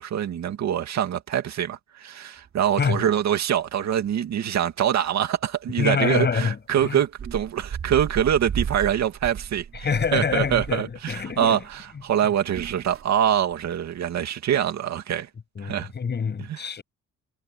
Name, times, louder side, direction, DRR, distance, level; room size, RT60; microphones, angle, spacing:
voice 1, 0.0-9.9 10.1-15.3 15.6-15.9 16.5-16.6, right 9 dB, 60° right, 2.4 m, -24 dB
sound 1, 2.4-3.1 3.4-3.5 3.8-4.3 4.9-5.1 5.4-5.5 6.3-6.4 7.0-11.8 12.1-13.8 14.1-14.2, right 7 dB, 45° right, 3.0 m, -35 dB
voice 2, 5.8-6.6 6.8-7.0 9.7-11.6 15.6-16.8, left 6 dB, 35° left, 7.3 m, -26 dB
cardioid pair, 160°, 30 cm